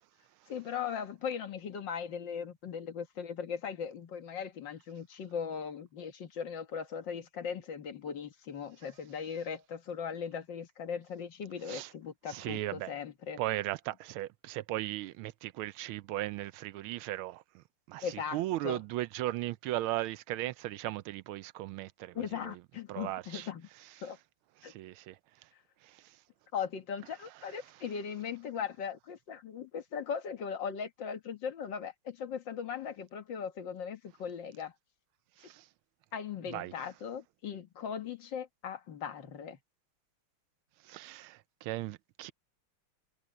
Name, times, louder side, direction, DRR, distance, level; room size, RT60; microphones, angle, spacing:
voice 1, 0.5-13.4 18.0-18.8 22.1-23.7 24.0-24.2 24.6-24.7 26.5-34.7 36.1-39.6, left 7 dB, 60° left, 2.1 m, -39 dB
voice 2, 12.3-12.9 13.4-17.4 17.9-18.1 18.3-22.5 22.9-23.5 24.6-25.1 35.4-35.6 36.5-36.7 40.9-42.3, right 15 dB, 85° right, 1.4 m, -37 dB
omnidirectional pair, 2.3 m